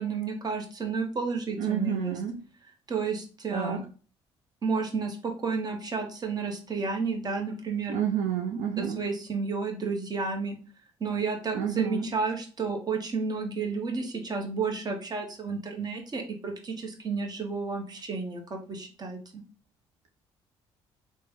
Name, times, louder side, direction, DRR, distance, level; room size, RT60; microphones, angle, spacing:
voice 1, 0.0-2.1 2.9-3.8 4.6-8.0 8.8-10.6 11.0-19.4, right 4 dB, 35° right, 3 dB, 0.9 m, -31 dB
voice 2, 1.6-2.4 3.5-3.8 7.9-9.0 11.5-12.1, right 9 dB, 80° right, 2 dB, 0.5 m, -29 dB
3.2 x 2.1 x 3.4 m, 0.38 s
supercardioid pair, 70°, 12 cm